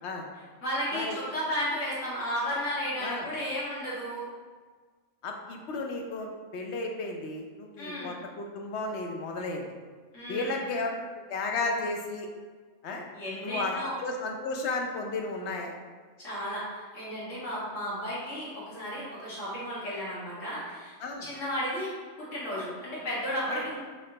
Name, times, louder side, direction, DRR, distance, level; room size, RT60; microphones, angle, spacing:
voice 1, 0.6-4.3 7.8-8.1 10.1-10.6 13.1-13.9 16.2-23.8, equal, 85° left, -8 dB, 1.9 m, -34 dB
voice 2, 5.2-9.6 10.3-11.0 11.3-12.3 12.8-13.0 13.4-15.7 21.0-21.3 23.5-23.6, left 3 dB, 70° left, 2 dB, 0.9 m, -33 dB
5.8 x 3.1 x 2.8 m, 1.5 s
omnidirectional pair, 1.3 m